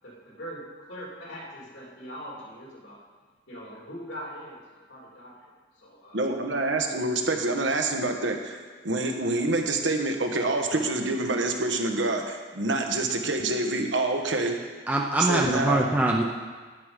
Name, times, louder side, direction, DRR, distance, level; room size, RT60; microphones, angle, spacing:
voice 1, 0.0-3.0 3.5-5.4 5.7-6.3, equal, 80° left, -4 dB, 3.1 m, -42 dB
voice 2, 6.1-8.6 8.8-14.5 15.2-15.8, right 2 dB, 80° right, 3 dB, 1.3 m, -26 dB
voice 3, 14.9-16.2, right 1 dB, 10° right, -1 dB, 0.6 m, -23 dB
10.5 x 9.2 x 5.1 m, 1.5 s
head